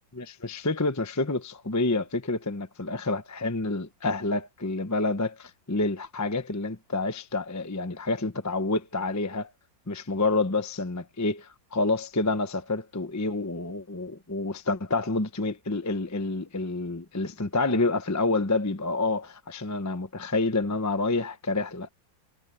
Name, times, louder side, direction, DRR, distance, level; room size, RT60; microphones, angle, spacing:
voice 1, 0.1-9.5 9.9-21.9, left 3 dB, 15° left, 0.6 m, -28 dB
omnidirectional pair, 2.0 m